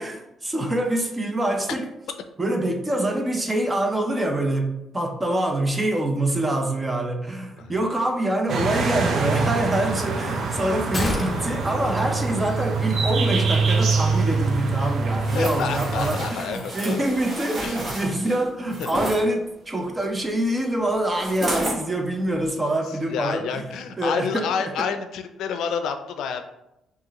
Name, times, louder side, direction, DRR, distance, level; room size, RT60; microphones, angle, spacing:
voice 1, 0.0-1.9 2.4-23.7 24.0-24.9, right 1 dB, 20° right, 0.5 m, -25 dB
sound 1, 8.5-16.3, right 4 dB, 60° right, 0.6 m, -24 dB
sound 2, 10.9-13.3 13.6-13.7, left 2 dB, 25° left, 0.6 m, -32 dB
sound 3, 15.2-19.2 21.2-21.8 22.3-22.5, right 1 dB, 40° right, 1.3 m, -31 dB
voice 2, 15.3-17.1 17.6-17.9 18.8-18.9 23.1-26.4, left 6 dB, 80° left, 0.4 m, -29 dB
5.2 x 2.5 x 2.9 m
cardioid pair, 90°, 0 cm